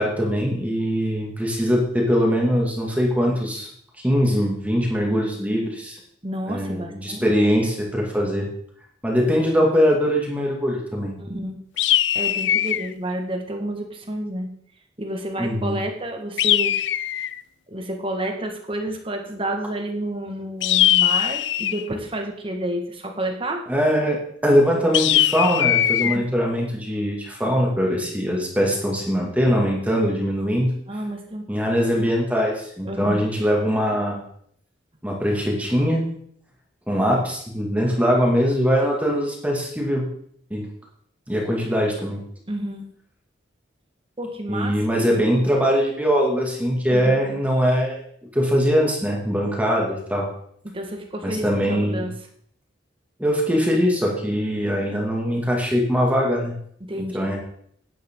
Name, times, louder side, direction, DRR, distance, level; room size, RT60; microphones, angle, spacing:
voice 1, 0.0-3.7 4.0-6.0 6.5-8.5 9.0-11.1 15.4-15.8 23.7-30.7 31.5-34.2 35.0-36.0 36.9-40.1 40.5-40.7 41.3-42.2 44.5-48.0 48.3-50.3 51.2-52.1 53.2-56.5 57.1-57.4, equal, 10° right, -1 dB, 2.2 m, -22 dB
voice 2, 6.2-7.3 11.2-11.5 12.1-14.5 15.0-16.7 17.7-23.7 26.0-26.2 30.9-31.6 32.8-33.2 42.5-42.9 44.2-45.0 46.9-47.3 50.6-52.1 56.9-57.3, right 1 dB, 30° right, 3 dB, 1.6 m, -30 dB
sound 1, 11.8-12.9 16.4-17.4 20.6-21.9 24.9-26.2, left 12 dB, 70° left, 0.4 m, -20 dB
10.5 x 10.0 x 3.8 m, 0.65 s
head